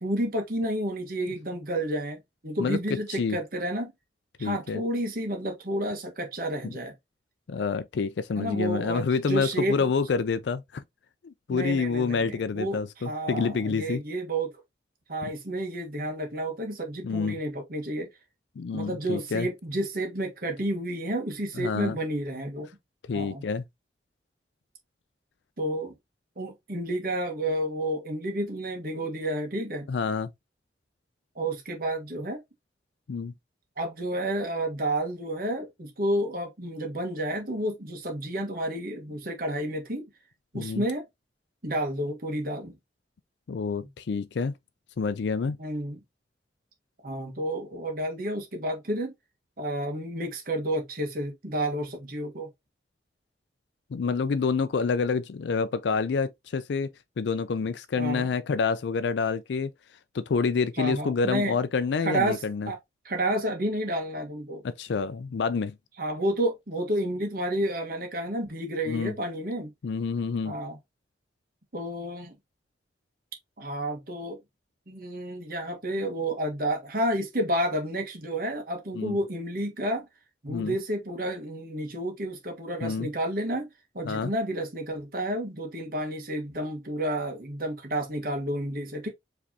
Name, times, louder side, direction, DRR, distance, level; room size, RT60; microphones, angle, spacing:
voice 1, 0.0-3.9 4.4-6.9 8.4-9.9 11.5-14.5 15.1-18.1 18.7-22.7 23.1-23.4 25.6-25.9 26.4-29.9 31.3-32.4 33.8-40.0 40.5-41.0 41.6-42.8 45.6-46.0 47.0-49.1 49.6-52.5 58.0-58.3 60.8-61.6 62.0-62.8 63.0-64.6 66.0-69.7 70.4-70.8 71.7-72.3 73.6-74.4 74.9-80.1 80.4-83.7 83.9-89.1, right 1 dB, 55° right, 1.4 m, -30 dB
voice 2, 2.6-3.4 4.4-4.8 6.6-6.7 7.5-10.8 11.2-14.0 17.0-17.4 18.6-19.5 21.6-22.0 23.1-23.6 29.9-30.3 33.1-33.3 40.5-40.8 43.5-44.5 45.0-45.6 53.9-56.9 57.2-59.7 60.1-62.7 64.6-65.7 68.9-69.1 69.8-70.6 79.0-79.2 80.5-80.7 82.8-83.1 84.1-84.3, left 5 dB, 75° left, 0.4 m, -28 dB
4.8 x 3.3 x 2.7 m
head